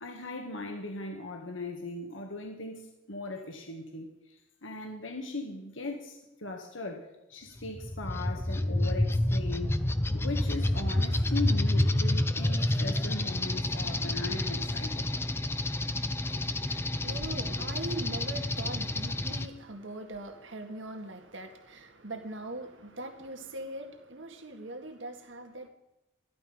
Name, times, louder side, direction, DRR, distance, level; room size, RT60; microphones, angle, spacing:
voice 1, 0.0-9.8 10.1-15.1, left 2 dB, 85° left, 3 dB, 1.9 m, -39 dB
sound 1, 7.6-19.5, left 1 dB, 10° left, 0.5 m, -29 dB
voice 2, 16.2-25.7, right 2 dB, 80° right, 5 dB, 1.9 m, -41 dB
14.0 x 11.5 x 5.4 m, 0.97 s
head